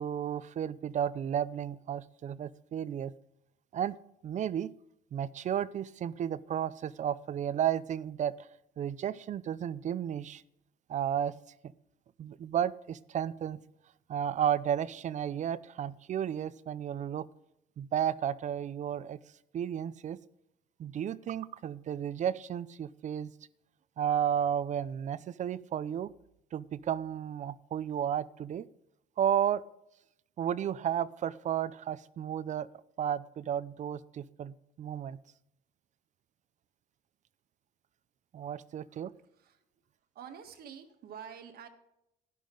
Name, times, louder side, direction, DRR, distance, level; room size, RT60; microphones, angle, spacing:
voice 1, 0.0-3.1 3.7-4.0 4.2-4.7 5.1-8.5 8.8-10.4 10.9-11.4 11.6-11.7 12.2-13.6 14.1-17.3 17.8-19.2 19.5-20.2 20.8-23.3 24.0-26.1 26.5-28.7 29.2-29.6 30.4-32.7 33.0-35.2 38.3-39.1, right 9 dB, 45° right, 18 dB, 0.5 m, -33 dB
voice 2, 40.2-41.7, right 8 dB, 65° right, 7 dB, 1.7 m, -47 dB
11.5 x 11.0 x 3.9 m, 0.81 s
cardioid pair, 110°, 17 cm